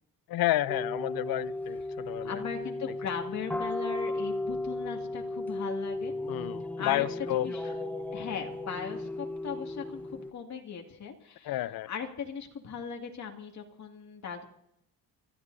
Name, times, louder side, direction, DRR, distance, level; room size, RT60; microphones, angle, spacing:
voice 1, 0.3-2.4 6.3-7.5 11.4-11.9, left 15 dB, 70° left, 18 dB, 0.7 m, -30 dB
sound 1, 0.7-10.3, left 2 dB, 5° left, 1.0 m, -35 dB
voice 2, 2.2-6.1 6.8-7.1 7.3-7.7 8.1-14.4, left 7 dB, 45° left, 2 dB, 2.3 m, -39 dB
29.5 x 14.0 x 2.7 m, 0.79 s
cardioid pair, 115°, 38 cm